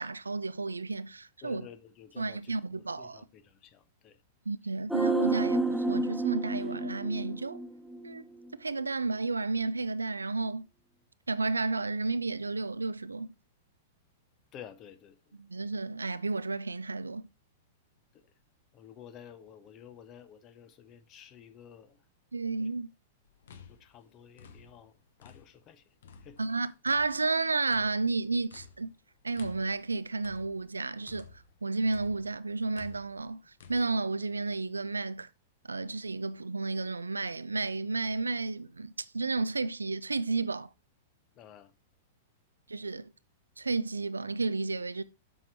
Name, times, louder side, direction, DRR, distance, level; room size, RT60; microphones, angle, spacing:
voice 1, 0.0-1.7 2.2-3.3 4.5-7.6 8.0-8.2 8.6-10.7 11.3-13.4 15.4-17.2 22.3-22.9 26.4-28.9 29.2-35.3 35.6-40.7 42.7-43.1 43.6-45.0, right 3 dB, 75° right, 0.5 m, -32 dB
voice 2, 1.4-4.2 14.5-15.4 18.1-18.3 18.7-22.0 23.7-24.9 25.2-25.8 26.2-26.4 41.4-41.7, left 9 dB, 30° left, 1.0 m, -51 dB
sound 1, 4.9-8.2 8.5-8.6, right 2 dB, ahead, 0.5 m, -30 dB
sound 2, 23.2-25.7 26.0-31.6 31.9-33.8, left 6 dB, 60° left, 1.1 m, -53 dB
7.7 x 6.0 x 4.6 m
figure-of-eight pair, 100°, 0 cm